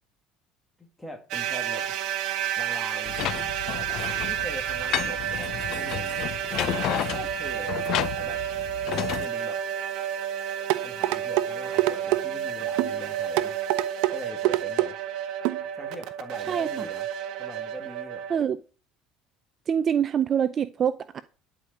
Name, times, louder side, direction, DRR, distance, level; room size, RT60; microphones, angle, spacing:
voice 1, 0.8-1.9 2.6-3.2 3.7-3.9 4.3-6.2 7.1-7.9 8.1-8.5 8.9-9.6 10.8-13.6 14.1-15.0 15.7-17.1 17.4-18.2, equal, 5° left, 2.3 m, -42 dB
sound 1, 1.3-18.4, right 10 dB, 60° right, 1.6 m, -31 dB
sound 2, 3.1-9.3, left 13 dB, 55° left, 0.5 m, -32 dB
sound 3, 10.7-11.5 11.8-12.2 12.8-12.9 13.4-14.1 14.4-14.9 15.4-15.6 16.0-16.1, right 18 dB, 80° right, 0.8 m, -24 dB
voice 2, 16.5-16.9 18.3-18.6 19.7-21.2, right 8 dB, 30° right, 0.5 m, -25 dB
11.0 x 5.0 x 8.5 m
cardioid pair, 145°, 0 cm